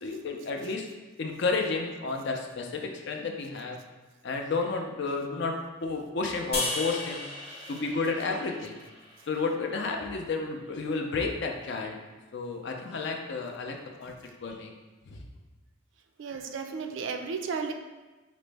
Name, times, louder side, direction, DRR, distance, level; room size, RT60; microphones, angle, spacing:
voice 1, 0.0-0.9 1.2-3.8 4.2-5.6 5.8-7.2 7.7-8.8 9.3-12.0 12.3-14.1 14.4-14.7 15.1-15.2, left 4 dB, 55° left, 2 dB, 0.4 m, -31 dB
sound 1, 6.5-9.8, left 2 dB, 30° left, 0.8 m, -36 dB
voice 2, 16.2-17.7, right 5 dB, 65° right, 5 dB, 0.3 m, -33 dB
5.0 x 2.0 x 3.3 m, 1.2 s
head